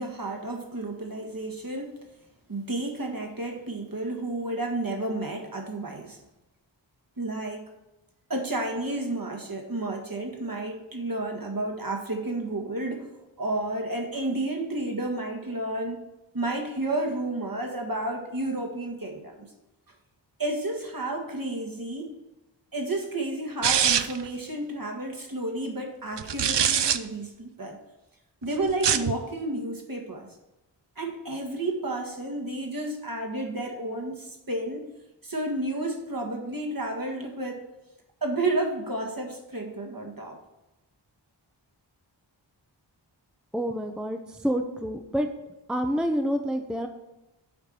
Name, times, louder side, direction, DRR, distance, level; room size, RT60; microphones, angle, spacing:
voice 1, 0.0-2.1 2.5-6.2 7.2-7.7 8.3-16.0 16.3-19.5 20.4-22.1 22.7-27.8 28.4-30.4 30.9-34.9 35.2-37.6 38.2-40.4, right 2 dB, 50° right, 2 dB, 1.7 m, -31 dB
sound 1, 23.6-24.3 26.2-27.0 28.7-29.1, right 9 dB, 70° right, 0.6 m, -23 dB
voice 2, 43.5-45.3 45.7-46.9, equal, ahead, 5 dB, 0.7 m, -28 dB
7.9 x 4.6 x 6.8 m, 0.98 s
wide cardioid pair, 45°, 45 cm